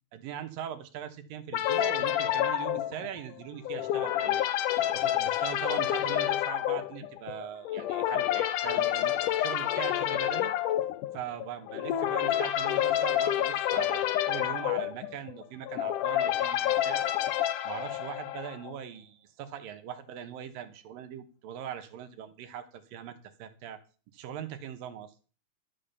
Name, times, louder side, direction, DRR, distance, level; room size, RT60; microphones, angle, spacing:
voice 1, 0.1-4.4 4.9-10.5 11.1-17.1 17.6-23.8 24.1-25.1, right 9 dB, 80° right, 9 dB, 3.0 m, -41 dB
sound 1, 1.5-18.7, left 12 dB, 75° left, 2.2 m, -29 dB
13.0 x 7.5 x 6.8 m, 0.37 s
omnidirectional pair, 4.0 m